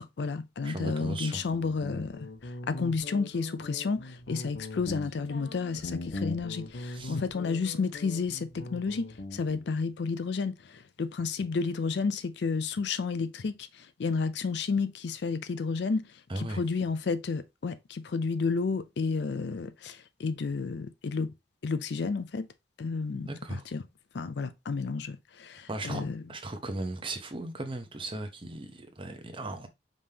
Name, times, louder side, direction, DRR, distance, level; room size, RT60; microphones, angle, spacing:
voice 1, 0.0-13.7 14.0-16.1 16.4-21.3 21.6-22.5 22.8-23.8 24.1-26.2, left 4 dB, 65° left, 0.4 m, -31 dB
voice 2, 0.6-1.4 6.9-7.2 16.3-16.6 23.2-23.7 25.7-29.7, right 2 dB, 30° right, 0.8 m, -37 dB
Guitar, 1.2-9.7, left 2 dB, 80° left, 1.0 m, -41 dB
5.2 x 3.5 x 2.8 m
head